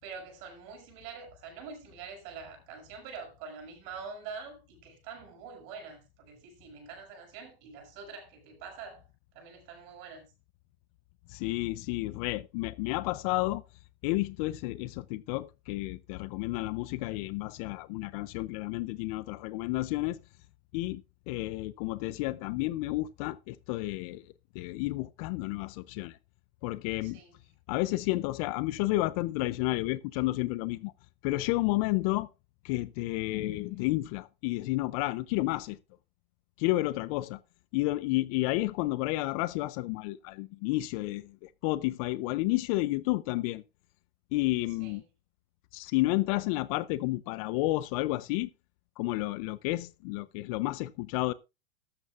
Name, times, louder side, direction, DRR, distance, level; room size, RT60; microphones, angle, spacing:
voice 1, 0.0-9.0 9.3-10.2 27.0-27.3 33.3-33.8 44.8-45.0, right 5 dB, 45° right, 6.3 m, -45 dB
voice 2, 11.3-13.6 14.0-20.2 20.7-21.0 21.3-24.3 24.5-26.2 26.6-27.2 27.7-30.9 31.2-32.3 32.6-35.8 36.6-37.4 37.7-43.6 44.3-45.0 45.7-48.5 49.0-51.3, left 19 dB, 40° left, 0.5 m, -31 dB
14.0 x 12.5 x 2.5 m
supercardioid pair, 145°, 29 cm